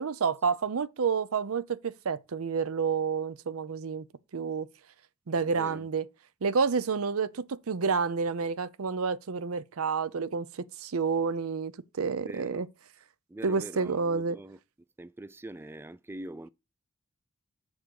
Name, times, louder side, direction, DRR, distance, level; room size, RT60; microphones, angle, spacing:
voice 1, 0.0-4.1 4.3-4.7 5.3-6.1 6.4-11.7 12.0-12.7 13.4-14.4, right 5 dB, 80° right, 0.6 m, -29 dB
voice 2, 5.4-5.9 12.2-12.7 13.3-14.6 15.0-16.5, right 1 dB, 10° right, 0.3 m, -43 dB
7.2 x 3.8 x 6.3 m
head